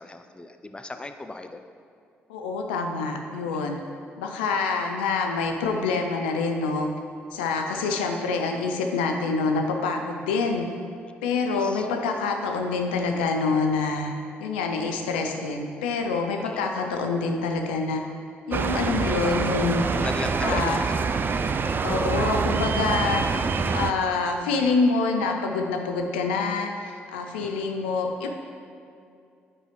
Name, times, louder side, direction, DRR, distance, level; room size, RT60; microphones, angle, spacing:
voice 1, 0.0-1.6 3.5-3.7 7.7-8.0 11.5-11.9 16.4-16.7 19.9-21.0 22.1-22.3 27.4-27.7, left 2 dB, 20° left, 7 dB, 0.5 m, -37 dB
voice 2, 2.3-3.8 4.2-6.9 7.3-10.7 11.2-14.1 14.4-18.0 18.5-19.9 20.4-20.8 21.8-23.2 23.7-28.3, left 4 dB, 85° left, 3 dB, 0.5 m, -26 dB
sound 1, 18.5-23.9, right 5 dB, 40° right, 0.4 m, -25 dB
8.7 x 4.8 x 3.1 m, 2.5 s
hypercardioid pair, 45°, 5 cm